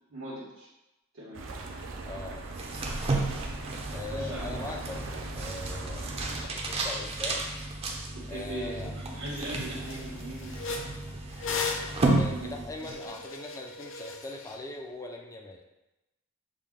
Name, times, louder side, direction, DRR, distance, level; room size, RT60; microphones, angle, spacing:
voice 1, 0.1-0.7 1.1-1.4 3.9-4.6 4.9-5.0 8.1-10.6 12.3-12.9, right 1 dB, 85° right, -10 dB, 1.2 m, -40 dB
sound 1, 1.3-6.5, right 2 dB, 70° right, 0.6 m, -39 dB
voice 2, 2.1-2.4 3.9-6.1 6.5-7.4 8.3-8.9 12.1-15.6, left 2 dB, 15° left, 2 dB, 0.4 m, -40 dB
sound 2, 2.5-13.0, right 2 dB, 30° right, 0.6 m, -33 dB
sound 3, 8.8-8.9 9.3-9.5 9.8-14.6, left 4 dB, 65° left, 0.6 m, -37 dB
6.5 x 2.2 x 3.6 m, 0.98 s
head